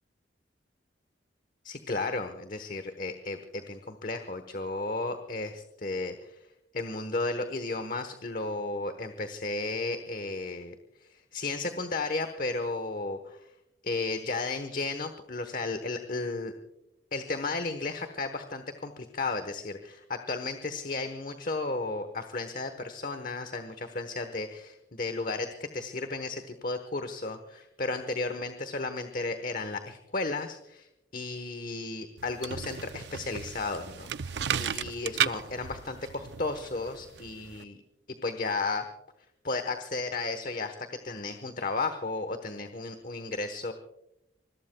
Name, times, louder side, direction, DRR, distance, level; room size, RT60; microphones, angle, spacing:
voice 1, 1.6-6.4 6.7-10.7 11.1-13.4 13.8-16.5 17.1-30.9 31.1-37.8 38.2-38.9 39.4-43.7, left 3 dB, 45° left, 8 dB, 1.1 m, -34 dB
sound 1, 32.2-37.6, right 8 dB, 65° right, 0.5 m, -34 dB
27.0 x 21.0 x 2.3 m, 0.84 s
head